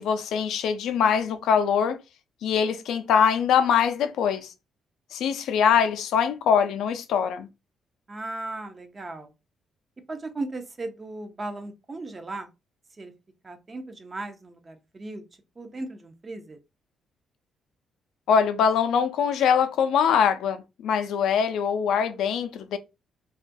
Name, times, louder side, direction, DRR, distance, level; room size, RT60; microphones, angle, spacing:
voice 1, 0.0-2.0 2.4-4.5 5.1-7.5 18.3-22.8, left 7 dB, 80° left, 0.3 m, -23 dB
voice 2, 8.1-9.3 10.1-12.5 13.0-13.1 13.4-15.2 15.6-16.6, right 2 dB, 30° right, 0.5 m, -36 dB
2.3 x 2.2 x 2.5 m
cardioid pair, 90°, 0 cm